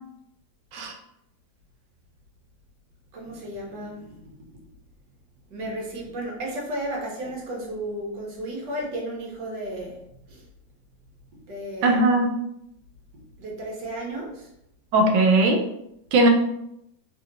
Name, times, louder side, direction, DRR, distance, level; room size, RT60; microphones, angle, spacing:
voice 1, 3.1-4.1 5.5-10.0 10.3-10.4 11.5-12.0 13.4-14.5, right 1 dB, 70° right, -1 dB, 1.4 m, -33 dB
voice 2, 11.8-12.3 14.9-15.6 16.1-16.3, right 2 dB, 90° right, 4 dB, 1.3 m, -18 dB
3.2 x 2.7 x 2.5 m, 0.79 s
omnidirectional pair, 2.0 m